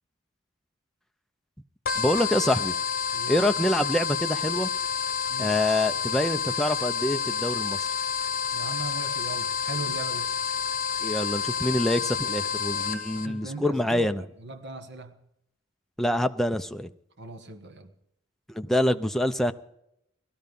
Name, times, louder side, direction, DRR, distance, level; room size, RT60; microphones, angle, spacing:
sound 1, 1.9-13.3, left 7 dB, 45° left, 1.3 m, -29 dB
voice 1, 2.0-2.7 3.3-4.7 5.4-7.9 11.0-14.2 16.0-16.9 18.5-19.5, left 1 dB, ahead, 7 dB, 0.5 m, -26 dB
voice 2, 3.1-3.5 5.3-5.6 8.5-10.3 12.7-12.9 13.2-15.2 17.2-17.9, right 3 dB, 55° right, 8 dB, 1.4 m, -39 dB
19.0 x 13.0 x 5.3 m, 0.78 s
head